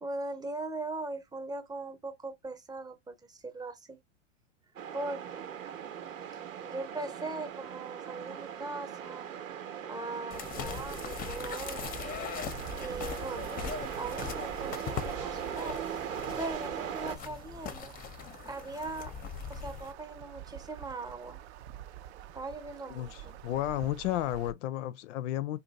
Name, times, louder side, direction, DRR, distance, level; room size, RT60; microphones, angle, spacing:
voice 1, 0.0-4.0 4.9-5.5 6.6-9.3 9.9-12.1 12.8-15.8 16.4-17.9 18.4-19.1 19.5-21.4 22.2-23.4, right 2 dB, 10° right, 0.8 m, -40 dB
sound 1, 4.8-17.2, right 9 dB, 85° right, 1.1 m, -39 dB
sound 2, 10.3-19.9, left 7 dB, 25° left, 0.6 m, -41 dB
sound 3, 12.4-24.5, right 11 dB, 60° right, 0.6 m, -48 dB
voice 2, 22.9-25.6, left 13 dB, 70° left, 0.5 m, -33 dB
2.6 x 2.2 x 3.9 m
hypercardioid pair, 110°, 38 cm